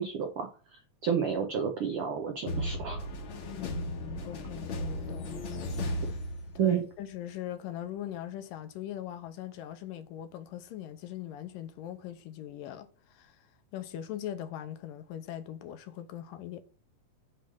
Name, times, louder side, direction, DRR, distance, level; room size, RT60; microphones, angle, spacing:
voice 1, 0.0-3.1 6.6-6.8, right 7 dB, 90° right, 1.2 m, -31 dB
sound 1, 2.5-6.9, left 1 dB, 60° left, 1.3 m, -35 dB
voice 2, 3.4-5.7 6.0-6.2 6.6-13.4 13.7-16.6, left 11 dB, 80° left, 2.3 m, -41 dB
9.4 x 3.3 x 6.3 m
omnidirectional pair, 4.1 m